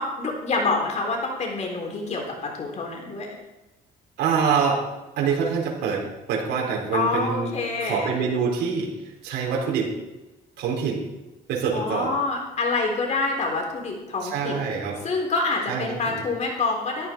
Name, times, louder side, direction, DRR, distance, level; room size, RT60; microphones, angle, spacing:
voice 1, 0.0-3.4 6.9-8.2 11.7-14.7 15.0-17.1, left 3 dB, 45° left, 1 dB, 3.8 m, -27 dB
voice 2, 4.2-4.8 5.2-7.5 7.8-8.9 9.2-9.9 10.6-11.0 11.5-12.1 14.2-15.0 15.7-16.2, right 6 dB, 80° right, -2 dB, 4.4 m, -25 dB
14.0 x 13.0 x 4.5 m, 1.0 s
cardioid pair, 110°, 17 cm